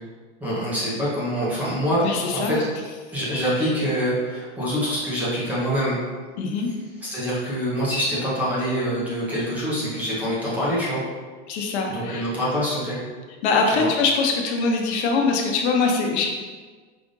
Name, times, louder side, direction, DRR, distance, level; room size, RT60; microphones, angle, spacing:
voice 1, 0.4-2.0 2.3-2.6 3.1-6.0 7.0-11.0 11.9-13.0 13.7-13.9, equal, 5° right, -9 dB, 0.7 m, -25 dB
voice 2, 2.0-2.6 6.4-6.7 11.5-12.2 13.4-16.3, left 4 dB, 80° left, 1 dB, 0.9 m, -22 dB
5.0 x 2.5 x 3.7 m, 1.4 s
supercardioid pair, 175°, 33 cm